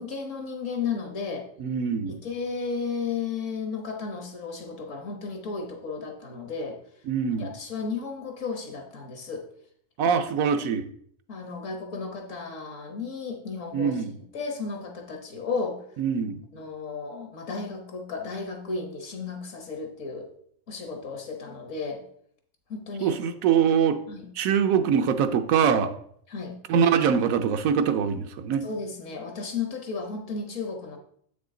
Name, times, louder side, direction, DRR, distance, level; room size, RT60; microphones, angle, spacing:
voice 1, 0.0-1.5 2.1-6.8 7.4-9.5 10.1-10.2 11.3-14.0 14.3-15.8 16.5-20.3 20.7-22.0 22.7-23.2 24.1-24.3 26.3-26.6 28.6-31.0, left 4 dB, 70° left, 3 dB, 1.6 m, -34 dB
voice 2, 1.6-2.2 7.1-7.5 10.0-10.9 13.7-14.1 16.0-16.4 23.0-24.0 24.4-25.9 26.7-28.6, right 7 dB, 85° right, 8 dB, 1.1 m, -23 dB
7.7 x 6.0 x 3.8 m, 0.64 s
omnidirectional pair, 1.4 m